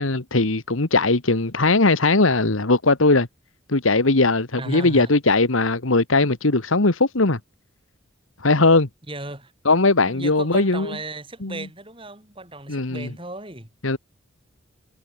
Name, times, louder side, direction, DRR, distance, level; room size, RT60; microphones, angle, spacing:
voice 1, 0.0-3.3 3.7-7.4 8.4-8.9 9.7-11.0 11.4-11.6 12.7-13.1 13.8-14.0, left 3 dB, 85° left, 1.8 m, -19 dB
voice 2, 4.6-5.1 9.1-9.5 10.0-13.7, right 2 dB, 25° right, 7.1 m, -35 dB
head